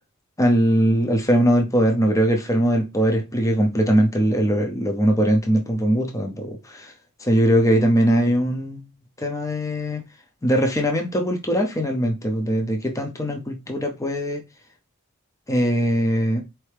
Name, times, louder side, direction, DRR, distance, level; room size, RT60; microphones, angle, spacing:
voice 1, 0.4-6.9 7.2-8.8 9.2-10.0 10.4-14.4 15.5-16.4, equal, 15° left, 0.7 m, -21 dB
4.4 x 2.7 x 3.3 m
head